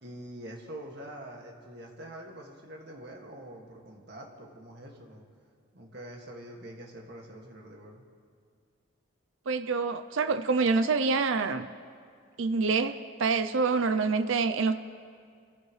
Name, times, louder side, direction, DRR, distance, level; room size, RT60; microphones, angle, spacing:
voice 1, 0.0-5.2 5.7-8.0, right 1 dB, 50° right, 0 dB, 2.1 m, -45 dB
voice 2, 9.5-11.7 12.4-14.7, right 4 dB, 70° right, 9 dB, 0.5 m, -26 dB
28.0 x 15.0 x 3.2 m, 2.2 s
head